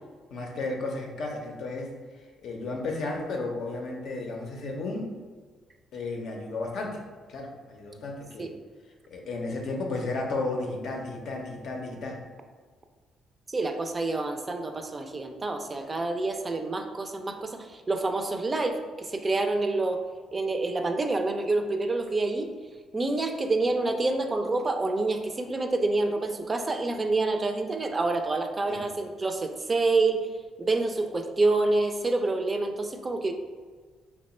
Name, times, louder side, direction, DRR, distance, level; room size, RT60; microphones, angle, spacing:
voice 1, 0.3-1.9 2.4-5.1 5.9-7.0 7.3-8.5 9.1-12.2 28.7-28.9, left 2 dB, 70° left, 1 dB, 0.6 m, -33 dB
voice 2, 13.5-20.0 20.3-22.5 22.9-30.3 30.6-33.3, right 2 dB, 30° right, 5 dB, 0.3 m, -27 dB
2.9 x 2.1 x 4.1 m, 1.5 s
cardioid pair, 90°, 0 cm